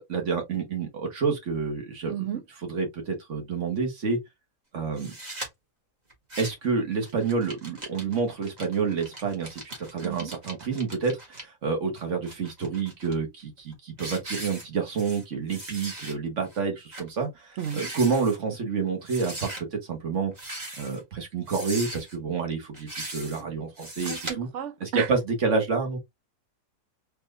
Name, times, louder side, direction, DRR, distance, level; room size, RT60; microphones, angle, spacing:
voice 1, 0.1-4.2 4.7-5.1 6.4-20.3 20.8-24.5 24.8-26.0, right 5 dB, 50° right, 1.6 m, -29 dB
voice 2, 2.1-2.4 10.0-10.3 17.6-17.9 24.0-25.1, right 10 dB, 65° right, 0.7 m, -32 dB
sound 1, 5.0-5.5 6.1-6.7 7.0-11.4 12.0-13.1 13.6-13.7 14.0-15.2 15.5-16.1 16.5-16.6 16.9-17.1 17.5-18.4 19.0-19.6 20.3-21.0 21.5-22.1 22.7-23.4 23.8-24.3, right 1 dB, 25° right, 1.7 m, -39 dB
4.3 x 3.3 x 2.5 m
omnidirectional pair, 1.7 m